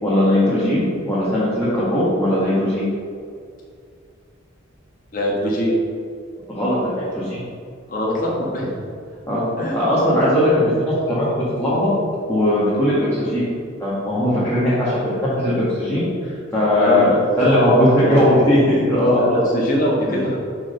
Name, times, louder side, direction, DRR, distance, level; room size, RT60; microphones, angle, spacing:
voice 1, 0.0-2.9 6.5-7.4 9.3-9.4 9.7-11.3 11.6-11.9 12.3-13.4 13.8-19.2, left 1 dB, 10° left, -11 dB, 1.6 m, -19 dB
voice 2, 5.1-5.7 7.9-8.7 9.6-9.8 16.7-18.5 19.1-20.4, equal, 45° left, -3 dB, 1.4 m, -22 dB
5.8 x 4.6 x 5.4 m, 2.3 s
head